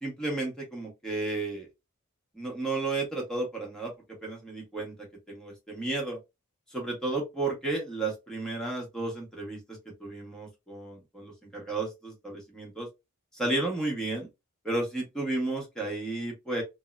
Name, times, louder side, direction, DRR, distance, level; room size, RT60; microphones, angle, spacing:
voice 1, 0.0-1.7 2.3-4.9 5.3-6.2 6.7-12.9 13.3-14.3 14.6-16.6, right 2 dB, 5° left, 1.1 m, -33 dB
2.7 x 2.1 x 2.3 m
head